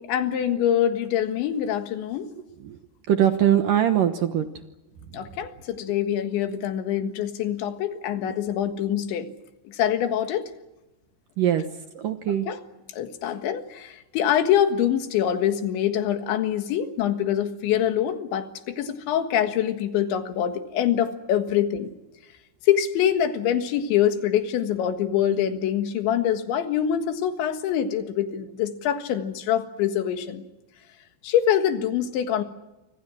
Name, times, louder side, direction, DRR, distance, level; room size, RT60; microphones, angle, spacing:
voice 1, 0.1-2.3 5.1-9.3 9.7-10.5 12.5-12.6 12.9-21.9 22.6-30.4 31.2-32.4, left 10 dB, 85° left, 8 dB, 4.0 m, -24 dB
voice 2, 3.1-4.5 11.4-11.6 11.9-12.5, right 10 dB, 70° right, 8 dB, 2.3 m, -21 dB
28.5 x 25.5 x 6.2 m, 1.0 s
omnidirectional pair, 5.2 m